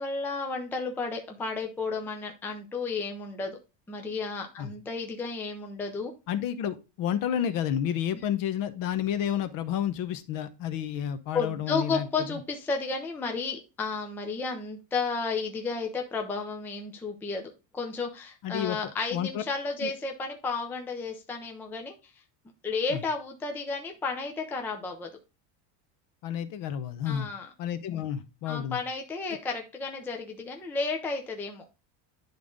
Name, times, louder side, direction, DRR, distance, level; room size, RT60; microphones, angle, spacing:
voice 1, 0.0-3.6 3.9-6.1 11.3-21.9 22.6-25.1 27.1-27.5 28.4-31.7, left 4 dB, 5° left, 3 dB, 0.4 m, -32 dB
voice 2, 6.3-12.4 18.4-18.8 19.1-19.4 19.8-19.9 22.9-23.0 26.2-27.3 27.6-28.8, left 9 dB, 45° left, 12 dB, 0.7 m, -30 dB
10.5 x 3.7 x 3.7 m, 0.29 s
cardioid pair, 170°, 47 cm